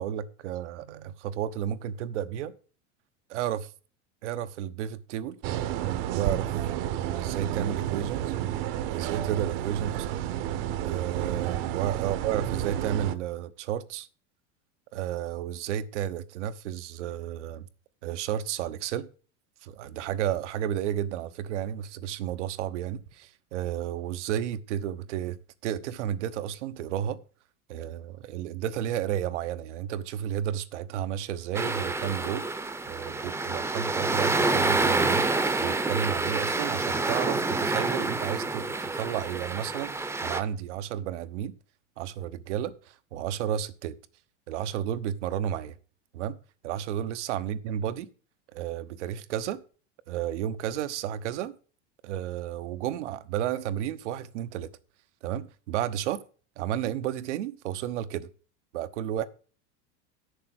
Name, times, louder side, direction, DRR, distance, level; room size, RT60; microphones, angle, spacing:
voice 1, 0.0-2.5 3.3-3.7 4.2-5.4 6.1-6.5 7.0-8.3 8.9-10.2 10.8-14.1 14.9-17.7 18.0-19.1 19.6-27.2 27.7-32.5 32.9-35.3 35.6-41.5 42.0-44.0 44.5-45.8 46.1-46.4 46.6-48.1 48.5-49.6 50.1-51.5 52.0-54.7 55.2-56.2 56.6-58.3 58.7-59.3, right 10 dB, 80° right, 1.1 m, -32 dB
sound 1, 5.4-13.1, right 11 dB, 55° right, 1.1 m, -31 dB
sound 2, 31.5-40.4, right 3 dB, 5° right, 0.8 m, -28 dB
8.7 x 6.8 x 7.7 m
supercardioid pair, 130°, 35 cm